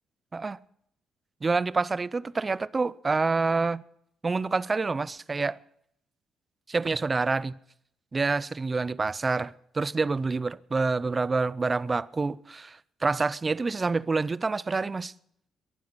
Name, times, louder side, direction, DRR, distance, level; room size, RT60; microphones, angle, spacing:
voice 1, 1.4-3.8 4.2-5.6 6.7-7.5 8.1-15.1, right 4 dB, 30° right, 0.6 m, -27 dB
23.0 x 9.3 x 6.2 m
cardioid pair, 90°, 0 cm